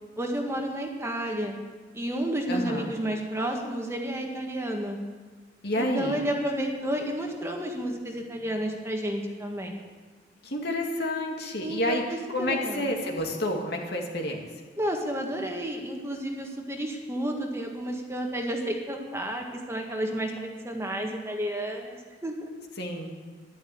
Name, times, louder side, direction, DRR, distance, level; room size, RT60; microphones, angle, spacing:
voice 1, 0.2-1.6 1.9-5.0 5.8-9.8 11.6-12.9 14.8-22.0 22.2-22.5, right 1 dB, 15° right, 1 dB, 1.7 m, -31 dB
voice 2, 2.5-2.9 5.6-6.2 10.4-12.0 12.3-14.5 22.8-23.2, left 1 dB, 60° left, 1 dB, 2.4 m, -29 dB
12.0 x 12.0 x 8.7 m, 1.4 s
head